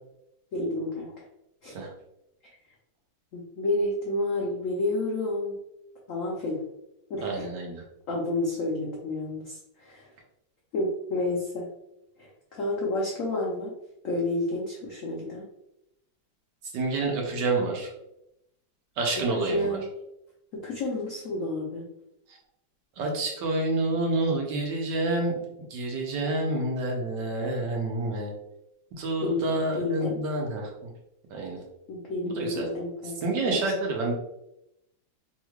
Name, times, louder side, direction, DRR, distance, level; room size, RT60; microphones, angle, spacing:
voice 1, 0.5-1.2 1.6-1.8 3.3-5.6 6.1-6.6 7.1-7.4 8.1-10.1 10.7-11.7 12.2-13.7 14.0-15.4 19.2-19.8 20.5-21.9 29.2-30.2 31.9-33.2 33.5-33.7, left 2 dB, 80° left, -3 dB, 0.7 m, -30 dB
voice 2, 7.2-7.8 16.7-17.9 19.0-19.8 22.3-22.4 23.0-25.4 25.7-28.3 28.9-30.9 31.3-31.6 32.2-32.7 33.2-34.1, right 2 dB, 70° right, 0 dB, 1.3 m, -28 dB
3.5 x 3.1 x 2.3 m, 0.83 s
omnidirectional pair, 2.1 m